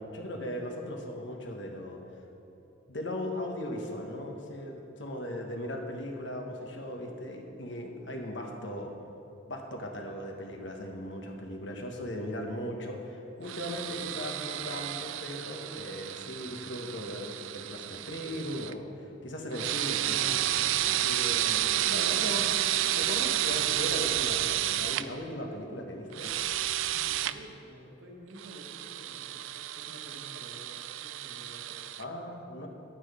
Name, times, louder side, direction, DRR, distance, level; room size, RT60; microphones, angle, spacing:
voice 1, 0.0-2.0 2.9-8.9 9.5-20.5 20.8-22.5 22.9-26.3 32.0-32.7, left 1 dB, 60° left, 2 dB, 1.4 m, -38 dB
sound 1, 13.5-18.7 19.5-25.0 26.1-27.3 28.4-32.0, right 13 dB, 75° right, 0.4 m, -31 dB
voice 2, 26.9-31.9, equal, 60° right, 1 dB, 1.5 m, -51 dB
11.5 x 8.9 x 5.1 m, 2.9 s
head